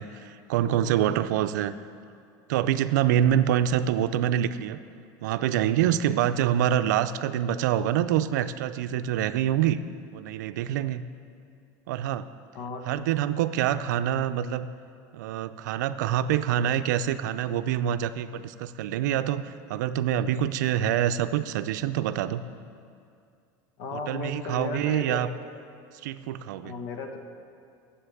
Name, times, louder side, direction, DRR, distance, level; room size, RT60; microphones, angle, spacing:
voice 1, 0.0-1.7 2.5-4.8 5.2-9.8 10.1-11.0 11.9-12.3 12.9-14.7 15.1-22.4 23.9-25.3 26.0-26.7, right 10 dB, 85° right, 12 dB, 0.5 m, -26 dB
voice 2, 23.8-25.2 26.6-27.2, left 4 dB, 65° left, 4 dB, 1.5 m, -35 dB
9.9 x 7.9 x 8.3 m, 2.4 s
supercardioid pair, 130°, 9 cm